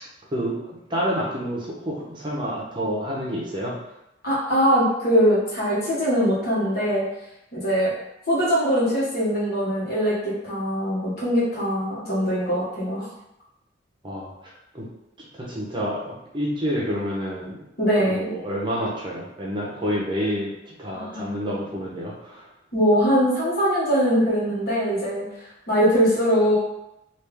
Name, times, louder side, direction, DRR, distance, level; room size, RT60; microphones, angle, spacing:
voice 1, 0.3-3.8 14.0-14.9 15.2-17.6 18.0-22.5, equal, 25° right, -4 dB, 0.7 m, -29 dB
voice 2, 4.2-7.1 7.5-7.9 8.3-13.1 17.8-18.3 20.9-21.5 22.7-25.2 25.7-26.6, equal, 55° left, -7 dB, 1.3 m, -22 dB
3.2 x 2.5 x 3.4 m, 0.87 s
head